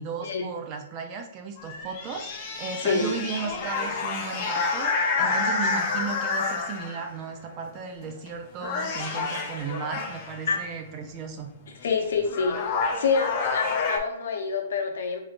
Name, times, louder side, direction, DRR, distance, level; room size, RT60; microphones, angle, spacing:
voice 1, 0.0-11.5, right 5 dB, 25° right, 4 dB, 0.4 m, -35 dB
sound 1, 1.6-7.1 8.0-8.3 8.6-10.4 11.8-11.9 12.3-14.0, left 4 dB, 30° left, 0.6 m, -29 dB
voice 2, 2.8-3.2 10.5-10.6 11.8-12.6 12.9-15.2, left 5 dB, 70° left, 3 dB, 0.9 m, -26 dB
5.1 x 3.1 x 2.5 m, 0.84 s
hypercardioid pair, 170°, 0 cm